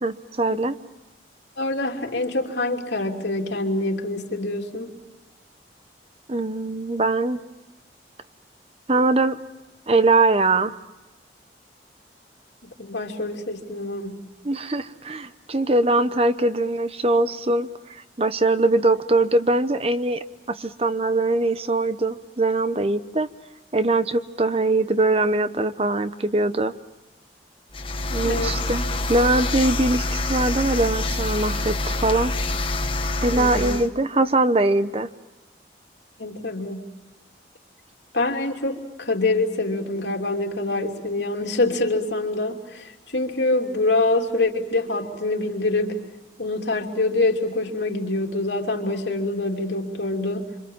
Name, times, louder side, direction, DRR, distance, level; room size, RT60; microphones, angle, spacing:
voice 1, 0.0-0.7 6.3-7.4 8.9-9.3 9.9-10.7 14.4-23.3 23.7-26.7 28.1-32.3 33.2-35.1, right 2 dB, 35° right, 12 dB, 0.9 m, -22 dB
voice 2, 1.6-4.9 12.6-14.2 28.2-28.6 33.3-33.8 36.2-36.8 38.1-46.0 46.4-50.5, left 2 dB, 90° left, 2 dB, 3.0 m, -25 dB
sound 1, 27.7-33.9, left 2 dB, 30° left, 1.4 m, -26 dB
26.5 x 26.0 x 7.3 m, 1.0 s
head